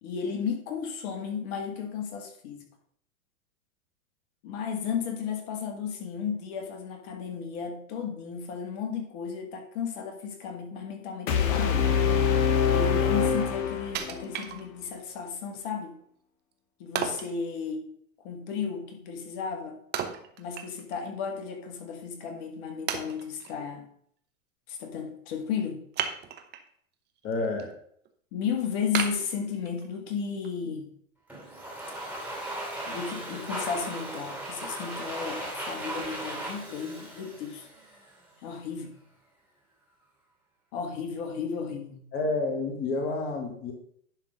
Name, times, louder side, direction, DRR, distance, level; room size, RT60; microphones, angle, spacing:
voice 1, 0.0-2.6 4.4-11.9 12.7-15.9 16.8-17.9 18.2-19.8 20.4-23.8 24.7-25.9 28.3-30.9 32.9-37.7 38.4-39.0 40.7-42.0, left 6 dB, 45° left, 4 dB, 1.8 m, -34 dB
sound 1, 11.3-14.3, left 7 dB, 65° left, 1.4 m, -24 dB
Wood, 13.9-15.1 15.5-15.6 16.9-17.4 19.9-21.0 21.4-21.5 22.2-22.3 22.9-23.5 25.9-26.7 27.2-27.6 28.0-28.1 28.9-30.0 30.4-30.5, right 8 dB, 25° right, 0.9 m, -34 dB
voice 2, 27.2-27.7 42.1-43.7, left 3 dB, 30° left, 2 dB, 1.6 m, -29 dB
Domestic sounds home sounds, 31.3-38.2, right 1 dB, 5° right, 2.6 m, -37 dB
10.5 x 3.9 x 5.1 m, 0.65 s
hypercardioid pair, 115°, 42 cm